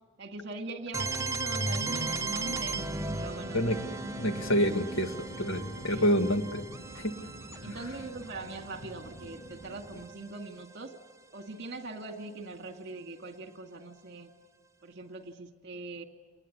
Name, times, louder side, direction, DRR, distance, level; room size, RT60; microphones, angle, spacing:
voice 1, 0.2-2.8 3.1-3.6 5.9-6.1 7.6-11.0 11.3-14.3 14.8-16.0, right 2 dB, 55° right, 4 dB, 2.3 m, -41 dB
sound 1, 0.9-10.7, right 3 dB, 15° right, 0.8 m, -37 dB
sound 2, 2.4-10.1, equal, 85° left, 3.2 m, -48 dB
voice 2, 4.2-6.6 7.0-7.1, equal, 65° left, 6 dB, 1.9 m, -27 dB
27.5 x 20.5 x 9.9 m, 1.5 s
head